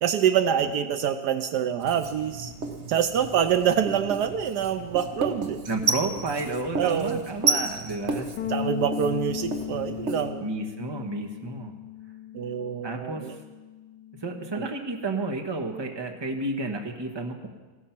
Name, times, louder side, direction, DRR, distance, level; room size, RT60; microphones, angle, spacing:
voice 1, 0.0-2.5 2.9-5.6 6.8-7.2 8.5-10.5 12.3-13.3 14.5-14.7, right 8 dB, 75° right, 10 dB, 1.2 m, -26 dB
Writing, 1.8-10.3, right 3 dB, 45° right, 1.4 m, -32 dB
voice 2, 5.7-8.3 10.4-11.7 12.8-13.4 14.2-17.5, right 2 dB, 15° right, 4 dB, 1.1 m, -31 dB
Bass guitar, 8.4-14.6, left 9 dB, 70° left, 1.5 m, -36 dB
15.5 x 12.5 x 5.9 m, 1.3 s
omnidirectional pair, 1.9 m